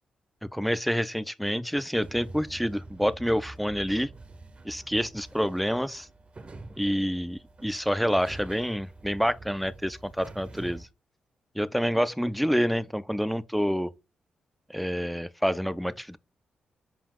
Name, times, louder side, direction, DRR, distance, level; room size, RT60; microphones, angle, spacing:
voice 1, 0.4-4.1 4.6-6.1 6.8-10.9 11.6-13.9 14.7-16.2, equal, ahead, 0.3 m, -28 dB
sound 1, 2.0-10.9, right 2 dB, 40° right, 0.6 m, -46 dB
5.2 x 2.3 x 3.5 m
supercardioid pair, 45°, 3 cm